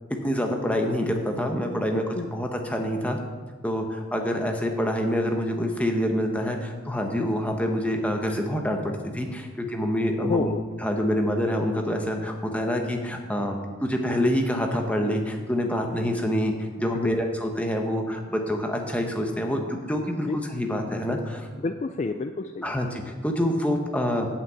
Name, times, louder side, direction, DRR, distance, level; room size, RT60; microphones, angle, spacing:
voice 1, 0.2-2.0 2.3-3.2 3.6-10.5 10.8-21.5 22.6-24.3, equal, 5° left, 2 dB, 0.9 m, -26 dB
voice 2, 1.9-2.3 10.2-10.6 16.9-17.2 20.3-20.4 21.6-22.7, left 3 dB, 35° left, 8 dB, 0.3 m, -29 dB
8.3 x 5.9 x 8.1 m, 1.5 s
head